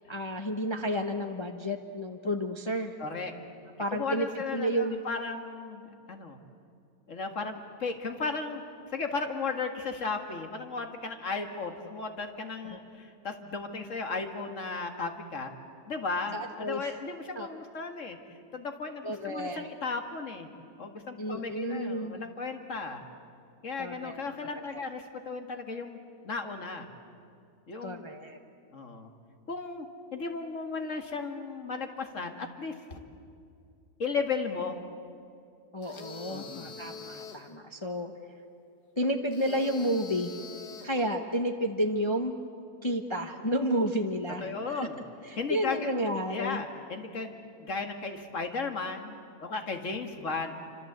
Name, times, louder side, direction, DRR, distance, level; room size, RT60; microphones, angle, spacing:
voice 1, 0.1-2.9 3.8-4.3 4.5-5.0 12.7-12.8 16.3-17.0 17.4-17.5 19.0-19.7 21.2-22.2 23.8-24.6 27.8-28.4 35.7-38.1 39.0-40.4 40.8-42.3 42.8-44.5 44.8-44.9 45.2-46.6, equal, 20° left, 4 dB, 1.1 m, -31 dB
voice 2, 3.0-3.3 3.9-6.4 7.1-8.6 8.9-15.5 15.8-18.2 18.5-20.5 20.8-23.0 23.6-26.0 26.2-26.9 27.7-28.0 28.7-29.1 29.5-29.9 30.1-33.0 34.0-34.8 36.3-36.7 44.4-45.0 45.4-45.9 46.3-47.3 47.6-49.2 49.4-50.6, left 4 dB, 50° left, 5 dB, 2.2 m, -35 dB
sound 1, 35.8-37.5 39.3-41.0, left 5 dB, 80° left, 2.1 m, -45 dB
27.5 x 26.0 x 8.0 m, 2.5 s
omnidirectional pair, 1.7 m